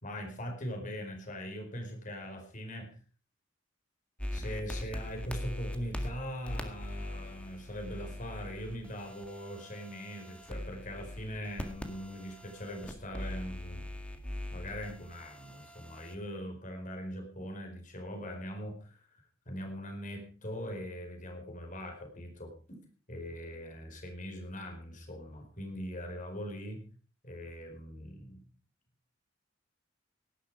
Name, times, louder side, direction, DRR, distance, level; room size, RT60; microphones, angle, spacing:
voice 1, 0.0-3.0 4.3-13.8 14.5-19.0 19.5-22.8 23.1-26.8 27.2-28.4, equal, 45° left, 4 dB, 4.8 m, -41 dB
sound 1, 4.2-16.1, left 1 dB, 5° left, 1.9 m, -41 dB
17.5 x 11.5 x 4.9 m, 0.38 s
head